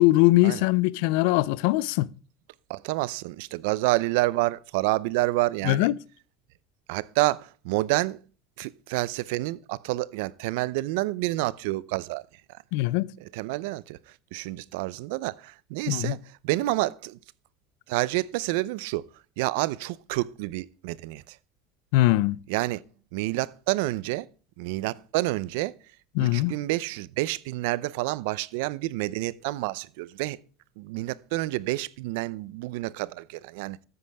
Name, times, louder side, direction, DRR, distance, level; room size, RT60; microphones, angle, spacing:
voice 1, 0.0-2.1 5.6-5.9 12.7-13.1 15.9-16.2 21.9-22.4 26.1-26.6, left 18 dB, 80° left, 0.5 m, -21 dB
voice 2, 2.7-5.9 6.9-8.2 8.6-12.2 13.2-14.0 14.3-16.2 16.4-17.2 17.9-19.0 19.4-21.2 22.5-22.8 23.1-24.3 24.6-25.7 26.2-30.4 30.8-33.8, right 19 dB, 80° right, 0.6 m, -28 dB
14.0 x 9.7 x 3.5 m
cardioid pair, 140°, 0 cm